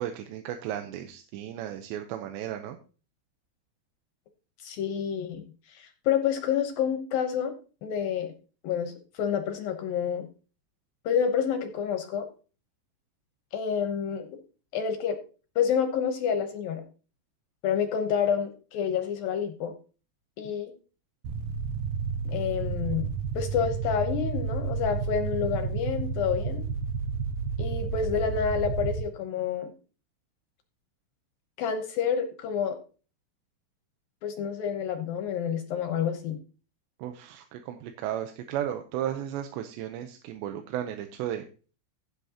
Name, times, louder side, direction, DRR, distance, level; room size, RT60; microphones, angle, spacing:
voice 1, 0.0-2.8 20.4-20.6 37.0-41.5, right 11 dB, 90° right, 6 dB, 3.1 m, -34 dB
voice 2, 4.6-5.4 5.7-7.5 7.8-8.3 8.6-10.3 11.1-12.3 13.5-14.3 14.7-15.2 15.6-16.8 17.6-19.7 20.4-20.7 22.3-23.1 23.3-26.6 27.6-29.7 31.6-32.8 34.2-36.4, left 7 dB, 70° left, 6 dB, 2.4 m, -28 dB
sound 1, 21.2-29.0, right 5 dB, 70° right, 2.3 m, -31 dB
16.0 x 8.4 x 2.9 m, 0.37 s
omnidirectional pair, 4.9 m